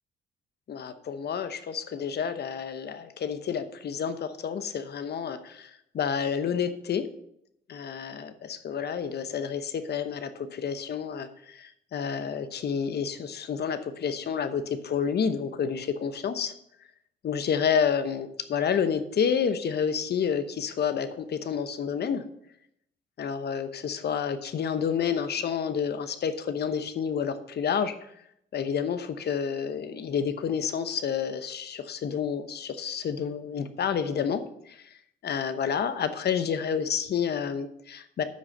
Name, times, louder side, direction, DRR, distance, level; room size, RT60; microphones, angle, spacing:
voice 1, 0.7-5.7 5.9-7.0 7.7-16.5 17.2-22.2 23.2-27.9 28.5-34.4 34.7-34.8 35.2-38.2, left 7 dB, 55° left, 10 dB, 1.0 m, -29 dB
9.7 x 6.3 x 5.4 m, 0.76 s
cardioid pair, 90°, 20 cm